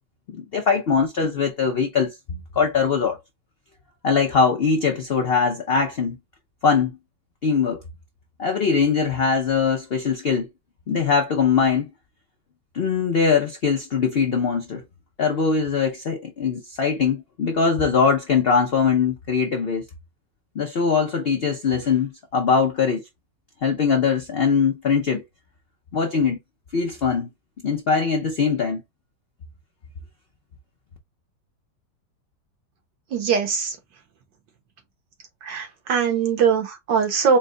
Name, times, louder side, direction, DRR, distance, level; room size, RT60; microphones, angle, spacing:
voice 1, 0.3-3.2 4.0-6.2 6.6-6.9 7.4-7.8 8.4-10.5 10.9-11.9 12.7-14.8 15.2-19.8 20.6-23.0 23.6-25.2 25.9-26.4 26.7-27.3 27.6-28.8, left 5 dB, 75° left, 0.5 m, -21 dB
voice 2, 33.1-33.8 35.4-37.4, right 6 dB, 80° right, 1.8 m, -21 dB
4.3 x 2.2 x 3.7 m
omnidirectional pair, 1.9 m